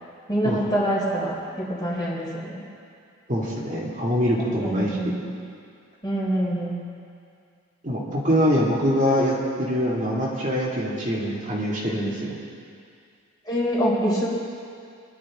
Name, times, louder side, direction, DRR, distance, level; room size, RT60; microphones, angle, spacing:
voice 1, 0.3-2.6 4.6-5.3 6.0-6.8 13.5-14.3, equal, 20° left, -5 dB, 3.7 m, -25 dB
voice 2, 3.3-5.1 7.8-12.4, equal, 35° right, -6 dB, 2.4 m, -24 dB
26.0 x 11.5 x 3.7 m, 2.3 s
head